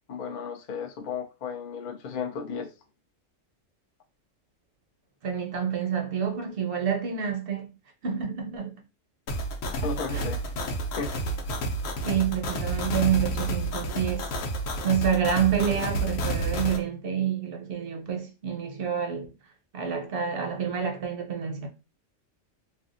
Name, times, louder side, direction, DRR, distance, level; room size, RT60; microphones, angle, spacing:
voice 1, 0.1-2.7 9.8-10.4 11.0-11.1, left 6 dB, 55° left, 0.5 m, -34 dB
voice 2, 5.2-7.7 8.0-8.7 10.1-10.2 12.0-14.3 14.8-19.3 19.7-21.7, right 8 dB, 60° right, 0.7 m, -28 dB
sound 1, 9.3-16.8, right 1 dB, 80° left, 1.1 m, -30 dB
3.4 x 2.3 x 2.5 m
omnidirectional pair, 1.3 m